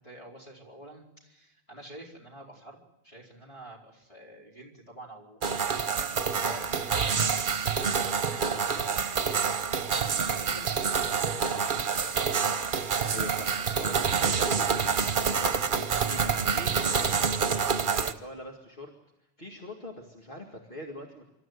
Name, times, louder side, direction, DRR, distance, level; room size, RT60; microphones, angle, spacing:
voice 1, 0.0-2.8 3.0-9.5 10.0-12.2, right 1 dB, 35° left, -2 dB, 4.6 m, -48 dB
sound 1, 5.4-18.1, right 6 dB, 55° right, 1.1 m, -27 dB
voice 2, 13.1-17.2 17.8-18.9 19.4-21.3, left 1 dB, 60° left, 0 dB, 2.3 m, -42 dB
25.5 x 13.5 x 9.5 m, 0.92 s
omnidirectional pair, 1.0 m